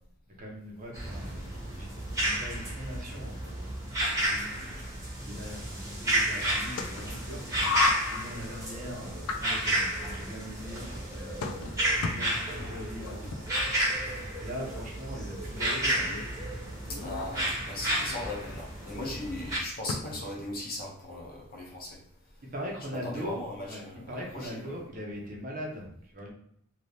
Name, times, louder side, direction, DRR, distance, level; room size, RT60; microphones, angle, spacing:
voice 1, 0.4-1.4 1.8-1.9 2.2-3.7 4.2-7.4 8.1-11.5 12.1-13.7 14.4-16.1 22.4-23.4 23.7-26.3, equal, 40° right, -1 dB, 0.7 m, -41 dB
sound 1, 0.9-19.6, right 1 dB, 15° right, 1.0 m, -32 dB
sound 2, 6.0-20.5, left 4 dB, 90° left, 0.4 m, -37 dB
voice 2, 16.9-22.0 22.9-24.6, left 2 dB, 45° left, -2 dB, 0.8 m, -38 dB
2.9 x 2.7 x 3.3 m, 0.69 s
head